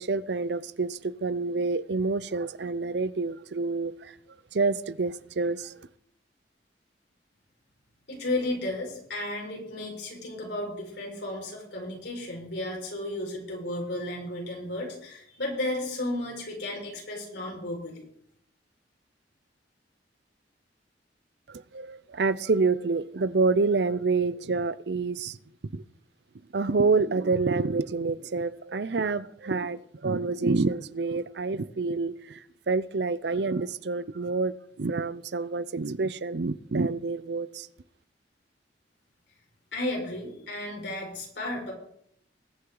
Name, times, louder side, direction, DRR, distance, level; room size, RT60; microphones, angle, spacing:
voice 1, 0.0-4.1 4.5-5.8 21.5-25.4 25.6-25.8 26.5-37.7, right 4 dB, 65° right, 17 dB, 0.6 m, -28 dB
voice 2, 8.1-18.0 39.7-41.7, left 1 dB, 75° left, -1 dB, 5.3 m, -33 dB
21.0 x 9.7 x 3.9 m, 0.70 s
head